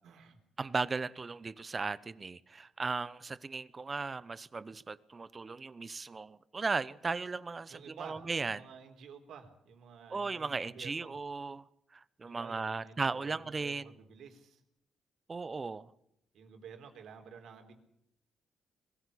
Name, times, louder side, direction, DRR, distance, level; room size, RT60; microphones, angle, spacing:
voice 1, 0.0-0.4 7.7-11.1 12.2-14.6 16.3-17.7, right 6 dB, 70° right, 3.8 m, -51 dB
voice 2, 0.6-8.6 10.1-11.6 11.9-13.9 15.3-15.9, right 4 dB, 30° right, 1.0 m, -36 dB
21.5 x 15.5 x 8.5 m
cardioid pair, 90°, 0 cm